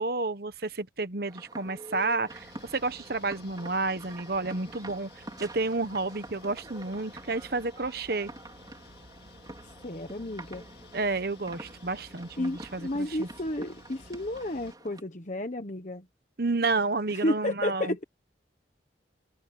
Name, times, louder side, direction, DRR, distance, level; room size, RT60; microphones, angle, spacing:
voice 1, 0.0-8.3 10.9-13.3 16.4-17.9, right 3 dB, 55° right, 1.1 m, -31 dB
sound 1, 1.3-15.0, right 2 dB, 20° right, 4.2 m, -47 dB
sound 2, 2.3-14.7, left 2 dB, 60° left, 2.1 m, -53 dB
voice 2, 9.8-10.6 12.4-16.0 17.2-18.0, left 1 dB, 40° left, 1.3 m, -32 dB
open air
head